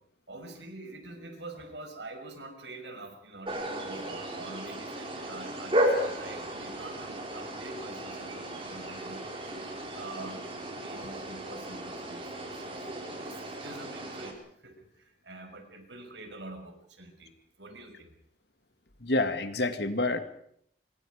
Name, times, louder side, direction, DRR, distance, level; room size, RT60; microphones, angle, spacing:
voice 1, 0.3-9.2 9.9-12.9 13.2-17.3 17.6-18.1, right 2 dB, 75° right, 6 dB, 5.8 m, -46 dB
sound 1, 3.5-14.3, right 1 dB, 30° right, 4.9 m, -34 dB
voice 2, 19.0-20.2, left 2 dB, 65° left, 8 dB, 2.3 m, -28 dB
26.5 x 24.5 x 5.1 m, 0.66 s
head